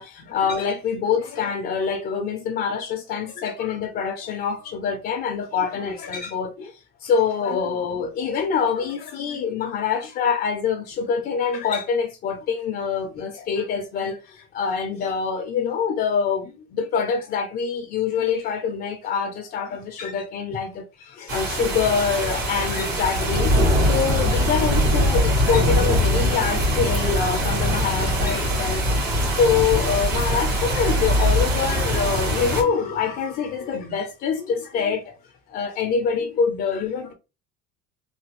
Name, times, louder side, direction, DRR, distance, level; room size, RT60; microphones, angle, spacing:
voice 1, 0.0-6.7 7.0-23.5 23.8-29.0 29.3-35.1 35.5-37.1, left 6 dB, 45° left, 0.5 m, -25 dB
sound 1, 21.3-32.6, equal, 90° right, 1.9 m, -22 dB
3.3 x 2.2 x 3.0 m
cardioid pair, 120°, 21 cm